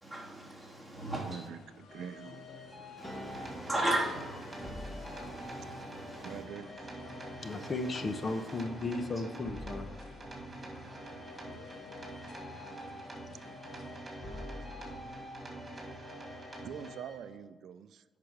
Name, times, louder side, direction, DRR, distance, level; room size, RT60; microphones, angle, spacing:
voice 1, 0.0-1.5 3.0-6.4 7.4-8.6, right 1 dB, 5° left, 2.8 m, -38 dB
sound 1, 1.0-14.0, left 4 dB, 75° left, 0.8 m, -56 dB
voice 2, 1.2-2.5 6.2-6.9 13.8-13.9 16.6-18.0, right 8 dB, 70° right, 0.4 m, -45 dB
sound 2, 1.9-17.4, left 1 dB, 20° left, 1.6 m, -48 dB
sound 3, 3.2-16.9, right 2 dB, 25° right, 2.7 m, -47 dB
voice 3, 7.2-13.3 14.7-16.6, left 3 dB, 40° left, 0.9 m, -40 dB
8.6 x 5.8 x 4.7 m
cardioid pair, 90°, 0 cm